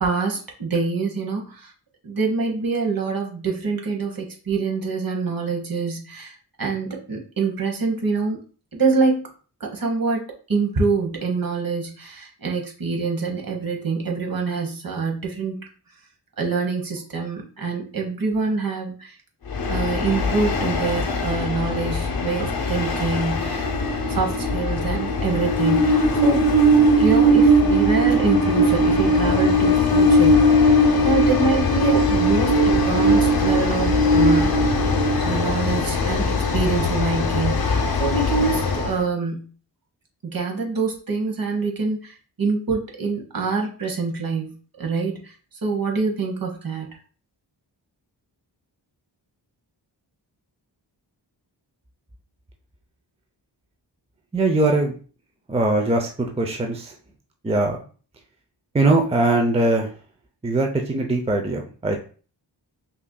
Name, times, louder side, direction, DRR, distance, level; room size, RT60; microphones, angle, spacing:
voice 1, 0.0-1.7 2.0-8.4 8.7-9.3 9.6-15.7 16.4-19.2 19.7-23.8 24.1-26.5 27.0-30.7 31.0-34.6 35.2-39.5 40.2-45.3 45.6-46.9, right 4 dB, 55° right, 1 dB, 1.1 m, -25 dB
Train, 19.5-39.0, left 1 dB, 55° left, 0.8 m, -19 dB
voice 2, 54.3-54.9 55.5-56.9 57.4-57.8 58.7-59.9 60.4-62.0, right 2 dB, 15° right, 3 dB, 0.5 m, -21 dB
5.6 x 2.7 x 2.2 m, 0.39 s
wide cardioid pair, 80°, 42 cm